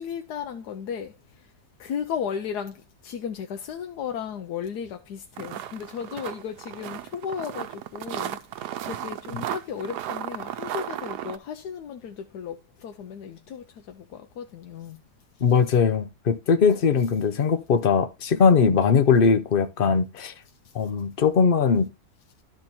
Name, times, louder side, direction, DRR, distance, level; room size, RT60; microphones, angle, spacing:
voice 1, 0.0-1.5 1.8-8.4 8.8-15.0 16.7-16.8, left 7 dB, 85° left, 1.3 m, -35 dB
sound 1, 5.4-11.4, right 11 dB, 90° right, 1.2 m, -34 dB
voice 2, 15.4-20.3 20.7-21.9, left 6 dB, 50° left, 0.7 m, -20 dB
12.0 x 4.4 x 4.2 m
omnidirectional pair, 1.7 m